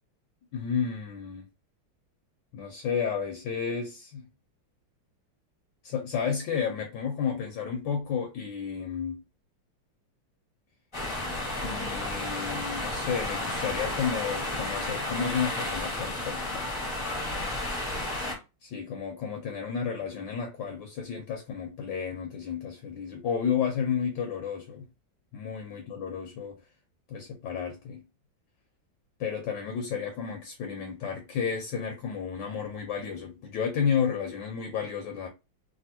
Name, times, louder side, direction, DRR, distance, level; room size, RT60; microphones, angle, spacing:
voice 1, 0.5-1.4 2.5-4.3 5.8-9.2 11.6-16.7 18.6-24.8 25.3-26.6 27.1-28.0 29.2-35.3, left 7 dB, 70° left, 1.2 m, -32 dB
sound 1, 10.9-18.3, left 1 dB, 25° left, 0.6 m, -32 dB
3.4 x 2.6 x 2.7 m
omnidirectional pair, 2.3 m